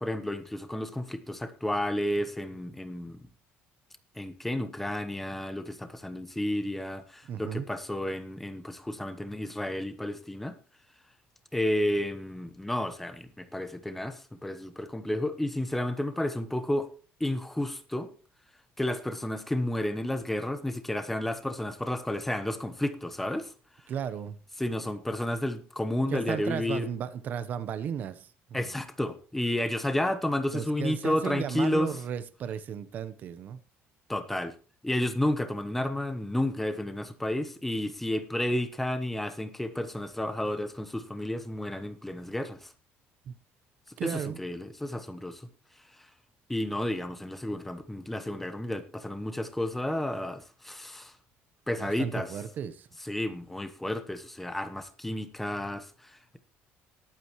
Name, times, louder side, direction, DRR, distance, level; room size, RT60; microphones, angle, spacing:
voice 1, 0.0-3.2 4.2-10.6 11.5-16.9 17.2-18.1 18.8-23.5 24.6-26.9 28.5-31.9 34.1-34.5 34.8-42.7 44.4-45.5 46.5-51.1 51.7-52.3 53.1-56.4, left 1 dB, 5° left, 0.9 m, -31 dB
voice 2, 7.2-7.7 23.9-24.4 26.1-28.7 30.5-33.6 43.3-43.4 44.0-44.4 51.8-52.9, right 8 dB, 40° right, 0.9 m, -35 dB
19.5 x 8.8 x 3.1 m
cardioid pair, 170°, 4 cm